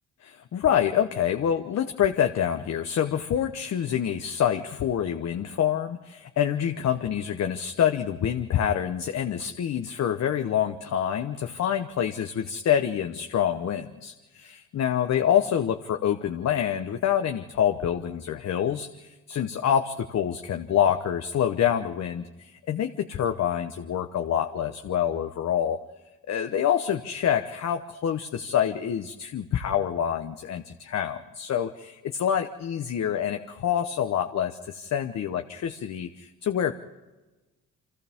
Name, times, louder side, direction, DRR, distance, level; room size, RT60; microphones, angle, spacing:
voice 1, 0.2-25.8 26.3-36.7, left 9 dB, 60° left, 6 dB, 1.0 m, -26 dB
29.5 x 24.5 x 3.6 m, 1.2 s
cardioid pair, 90°, 30 cm